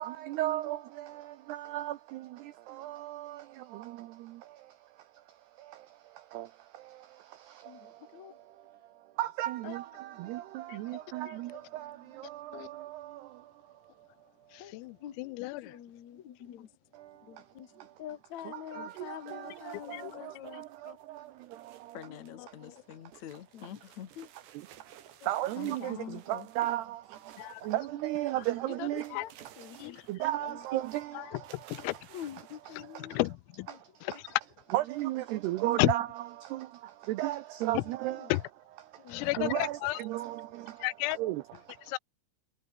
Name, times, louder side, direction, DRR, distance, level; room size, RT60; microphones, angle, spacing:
voice 1, 0.0-14.7 16.9-18.0 18.4-22.1 22.5-23.2 24.5-29.2 29.7-31.9 32.8-33.2 33.7-34.1 34.7-36.1 36.4-38.3 38.9-40.9 41.1-41.9, right 15 dB, 85° right, 2.3 m, -37 dB
voice 2, 7.7-8.4 14.6-14.7 15.0-15.2 15.6-16.7 17.2-17.7 18.0-21.0 21.9-24.3 25.2-25.3 25.6-26.5 28.7-28.9 29.1-30.0 30.5-30.6 32.1-33.2 34.0-34.2 38.2-38.3 39.0-39.5, left 10 dB, 60° left, 1.8 m, -45 dB
voice 3, 14.5-15.8 19.8-20.6 22.4-22.8 27.4-27.7 29.1-29.3 29.8-30.1 31.2-32.0 32.8-33.7 34.0-34.4 35.8-35.9 37.8-37.9 38.3-38.4 39.1-40.0 40.8-41.2 41.9-42.0, left 21 dB, 90° left, 3.5 m, -33 dB
sound 1, 18.9-22.3 22.6-28.1 28.4-30.4 30.6-31.1 31.4-33.3, right 10 dB, 60° right, 4.1 m, -57 dB
omnidirectional pair, 5.9 m